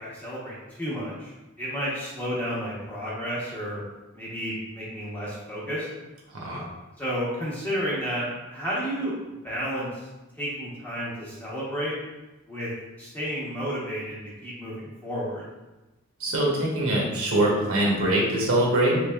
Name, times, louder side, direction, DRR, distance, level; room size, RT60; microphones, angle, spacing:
voice 1, 0.0-1.3 1.6-3.8 4.1-5.9 7.0-9.1 9.4-10.1 10.3-12.0 12.5-12.7 13.0-15.4, equal, 10° left, -8 dB, 0.8 m, -31 dB
voice 2, 6.3-6.6 16.2-19.1, right 1 dB, 85° right, -3 dB, 0.9 m, -23 dB
3.5 x 3.2 x 2.3 m, 1.1 s
head